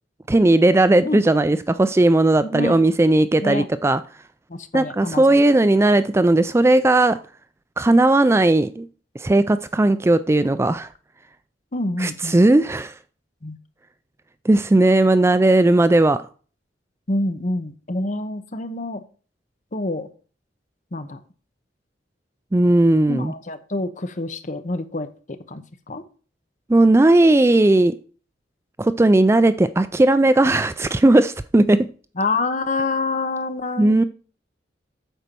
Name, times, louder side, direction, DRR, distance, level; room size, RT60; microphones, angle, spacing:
voice 1, 0.3-4.0 4.7-7.2 7.8-8.9 9.2-10.9 12.0-12.9 14.4-16.2 22.5-23.3 26.7-28.0 28.8-31.9 33.8-34.0, right 2 dB, 15° right, 0.3 m, -16 dB
voice 2, 2.4-2.8 3.4-3.7 4.5-5.4 11.7-12.4 13.4-13.6 17.1-19.0 19.7-20.1 20.9-21.2 23.1-25.6 25.9-26.0 32.2-34.0, left 2 dB, 40° left, 0.9 m, -27 dB
9.1 x 4.3 x 6.8 m
head